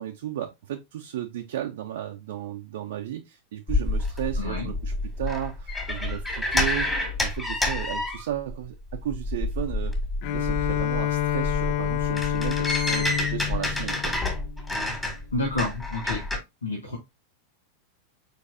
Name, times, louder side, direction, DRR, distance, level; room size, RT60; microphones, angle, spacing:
voice 1, 0.0-6.9 7.2-9.9 10.3-14.1, right 11 dB, 55° right, 0.6 m, -34 dB
sound 1, 3.7-8.6 8.9-16.4, left 2 dB, 10° left, 1.9 m, -28 dB
voice 2, 4.4-4.7 15.3-16.2 16.6-17.0, left 2 dB, 75° left, 1.4 m, -29 dB
Bowed string instrument, 10.2-14.9, left 12 dB, 45° left, 0.5 m, -28 dB
4.8 x 4.2 x 2.6 m
figure-of-eight pair, 90°, 0 cm